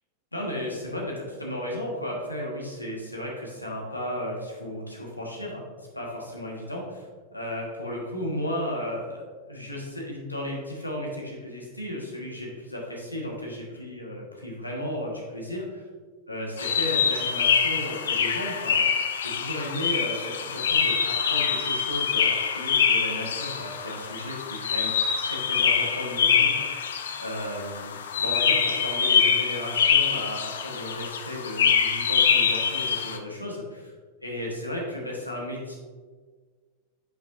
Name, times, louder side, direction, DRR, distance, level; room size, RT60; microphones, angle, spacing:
voice 1, 0.3-5.6 5.9-7.0 7.3-15.8 16.3-24.9 25.2-26.9 27.2-33.9 34.2-35.8, left 1 dB, 85° left, -2 dB, 1.4 m, -34 dB
sound 1, 16.6-33.2, left 7 dB, 65° left, 0.5 m, -24 dB
9.1 x 5.2 x 2.6 m, 1.5 s
figure-of-eight pair, 90°, 0 cm